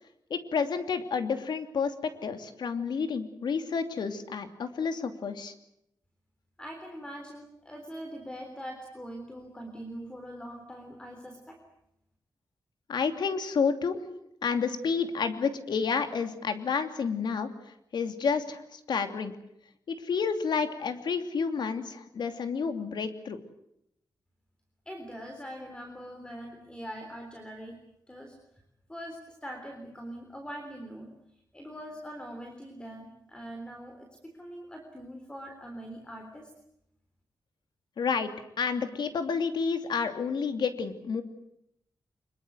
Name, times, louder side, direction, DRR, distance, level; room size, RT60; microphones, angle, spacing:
voice 1, 0.3-1.9 2.2-5.5 12.9-14.0 14.4-17.5 17.9-19.3 19.9-23.4 38.0-38.3 38.6-41.2, left 5 dB, 75° left, 8 dB, 2.8 m, -30 dB
voice 2, 6.6-11.6 24.9-27.8 28.1-28.4 28.9-31.1 31.5-36.5, equal, 10° left, 4 dB, 3.6 m, -42 dB
25.0 x 22.5 x 8.1 m, 0.77 s
wide cardioid pair, 145°, 8 cm